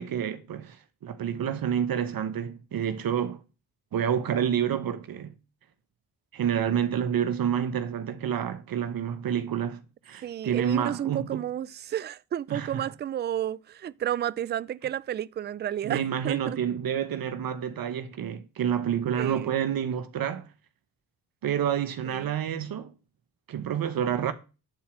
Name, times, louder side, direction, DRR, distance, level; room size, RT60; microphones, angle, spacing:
voice 1, 0.0-3.4 3.9-5.3 6.3-11.4 12.5-12.9 15.8-20.5 21.4-22.9 23.5-24.3, right 9 dB, 60° right, 1.0 m, -29 dB
voice 2, 10.2-16.6 19.1-19.5 22.1-22.4, right 11 dB, 30° right, 0.3 m, -32 dB
9.6 x 4.2 x 5.9 m
supercardioid pair, 65°, 40 cm